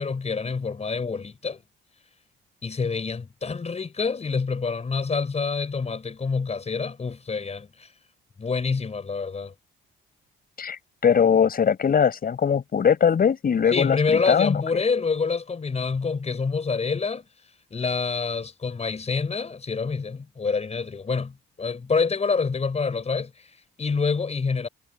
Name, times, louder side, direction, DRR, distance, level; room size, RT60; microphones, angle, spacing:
voice 1, 0.0-1.6 2.6-7.9 8.4-9.5 13.7-17.2 17.7-24.7, left 4 dB, 35° left, 4.9 m, -27 dB
voice 2, 10.6-14.6, left 7 dB, 50° left, 6.6 m, -21 dB
cardioid pair, 90°, 20 cm